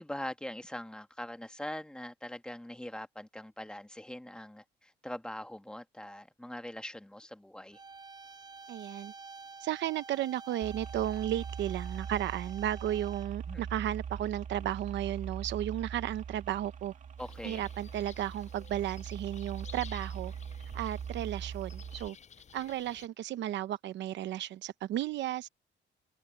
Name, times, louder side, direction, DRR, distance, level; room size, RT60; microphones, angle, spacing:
voice 1, 0.0-7.8 13.5-13.7 17.2-17.7, left 1 dB, 5° left, 1.5 m, -42 dB
sound 1, 7.7-13.5, right 4 dB, 20° right, 6.0 m, -49 dB
voice 2, 8.7-9.1 9.6-16.9 17.4-20.3 20.7-22.2 22.5-25.5, right 12 dB, 70° right, 0.8 m, -34 dB
sound 2, 10.6-22.1, right 7 dB, 40° right, 2.1 m, -41 dB
sound 3, 17.2-23.1, left 7 dB, 35° left, 7.9 m, -54 dB
open air
cardioid pair, 155°, 19 cm